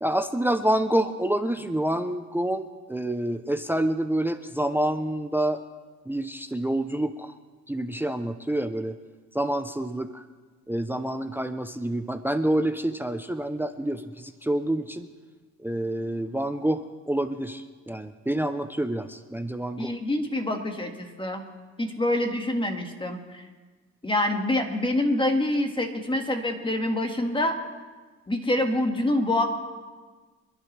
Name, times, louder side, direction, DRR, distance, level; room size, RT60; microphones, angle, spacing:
voice 1, 0.0-5.6 6.1-7.3 7.7-9.0 9.3-10.2 10.7-15.1 15.6-19.9, right 1 dB, 5° right, 10 dB, 0.6 m, -27 dB
voice 2, 19.8-21.4 21.8-23.4 24.0-27.6 28.3-29.4, left 1 dB, 15° left, 4 dB, 1.8 m, -26 dB
25.5 x 11.0 x 3.3 m, 1.4 s
cardioid pair, 90°, 30 cm